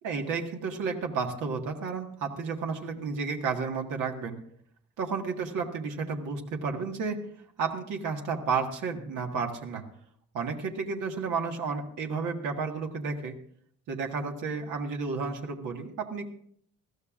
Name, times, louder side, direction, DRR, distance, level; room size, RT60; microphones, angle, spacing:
voice 1, 0.0-4.4 5.0-7.2 7.6-9.8 10.3-13.3 13.9-16.2, right 5 dB, 85° right, 2 dB, 1.7 m, -32 dB
20.5 x 14.0 x 2.5 m, 0.65 s
cardioid pair, 90°, 30 cm